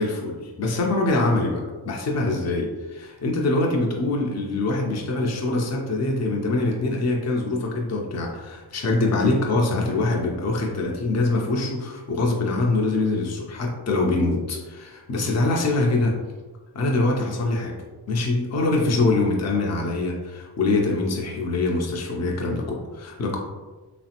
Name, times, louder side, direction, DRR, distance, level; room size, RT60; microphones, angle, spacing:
voice 1, 0.0-16.2 16.7-17.8 18.1-23.4, left 2 dB, 35° left, 0 dB, 0.6 m, -24 dB
3.2 x 2.0 x 2.9 m, 1.3 s
cardioid pair, 55°, 47 cm